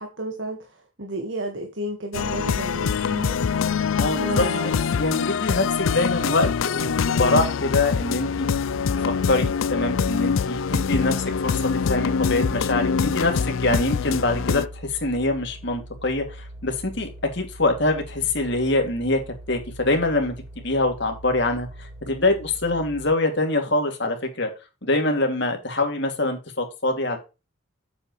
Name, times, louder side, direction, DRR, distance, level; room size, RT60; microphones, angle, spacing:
voice 1, 0.0-3.4 4.0-4.8, right 1 dB, 65° right, 1.7 m, -32 dB
sound 1, 2.1-14.7, left 6 dB, 75° left, 0.4 m, -24 dB
voice 2, 4.0-8.5 8.9-11.6 11.9-19.2 19.5-20.3 20.6-24.5 24.8-27.2, left 2 dB, 55° left, 2.6 m, -24 dB
sound 2, 8.3-23.1, right 1 dB, 5° right, 4.3 m, -41 dB
8.3 x 8.2 x 3.2 m
head